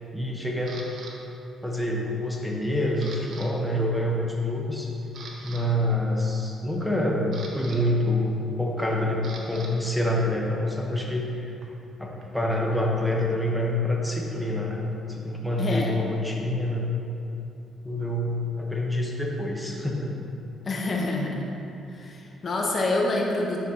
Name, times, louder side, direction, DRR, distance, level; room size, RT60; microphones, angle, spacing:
voice 1, 0.1-0.8 1.6-4.9 5.4-11.5 12.0-16.9 17.8-20.1, left 1 dB, ahead, -2 dB, 1.1 m, -27 dB
Camera, 0.7-1.1 1.7-2.1 2.4-3.5 3.7-3.9 4.5-4.6 5.0-5.6 6.8-9.7 10.0-12.6, right 3 dB, 65° right, 1.0 m, -45 dB
voice 2, 15.6-15.9 20.6-21.5 21.9-23.6, left 2 dB, 45° left, -1 dB, 1.0 m, -27 dB
10.0 x 6.0 x 2.9 m, 2.8 s
cardioid pair, 90°, 0 cm